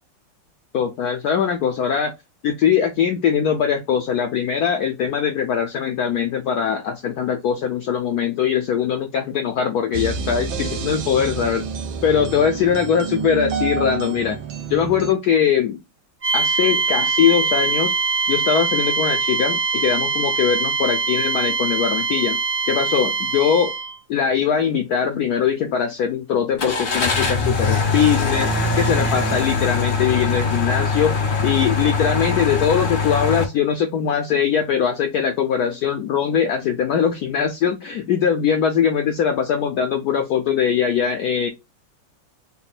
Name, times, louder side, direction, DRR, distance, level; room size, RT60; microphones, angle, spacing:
voice 1, 0.7-2.1 2.4-11.7 12.0-14.4 14.7-15.8 16.3-17.9 18.3-22.4 22.7-23.7 24.1-31.1 31.4-41.5, left 8 dB, 80° left, 6 dB, 0.8 m, -21 dB
sound 1, 9.9-15.1, right 5 dB, 80° right, 1.5 m, -28 dB
sound 2, 16.2-23.9, right 5 dB, 55° right, 0.3 m, -22 dB
Car / Engine starting, 26.6-33.4, left 4 dB, 45° left, 0.6 m, -22 dB
4.1 x 2.1 x 4.0 m, 0.23 s
omnidirectional pair, 2.2 m